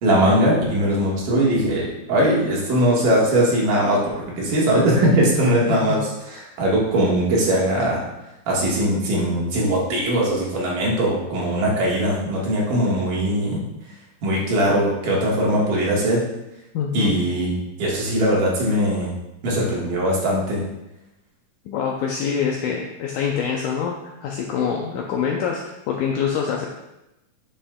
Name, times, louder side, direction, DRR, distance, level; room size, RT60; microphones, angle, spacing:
voice 1, 0.0-4.0 4.4-6.0 6.3-8.0 8.5-13.6 14.2-16.2 16.9-17.5 17.8-19.1 19.4-20.6, right 1 dB, 70° right, -4 dB, 3.0 m, -20 dB
voice 2, 16.7-17.1 21.7-26.7, left 7 dB, 80° left, 0 dB, 1.8 m, -25 dB
9.8 x 5.1 x 2.2 m, 0.91 s
omnidirectional pair, 4.2 m